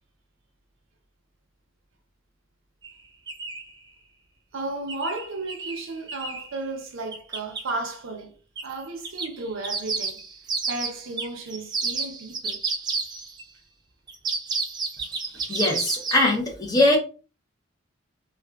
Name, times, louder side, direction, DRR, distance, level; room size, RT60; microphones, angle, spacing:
sound 1, 2.8-2.9 3.3-3.7 4.9-6.5 7.1-7.7 8.6-8.7 9.0-13.4 14.1-16.4, right 4 dB, 20° right, 0.3 m, -31 dB
voice 1, 4.5-8.4 8.6-10.2 10.7-12.6 15.3-15.7, right 2 dB, 80° right, 0.6 m, -34 dB
voice 2, 15.5-17.0, left 1 dB, 20° left, 0.7 m, -21 dB
2.4 x 2.3 x 2.3 m
head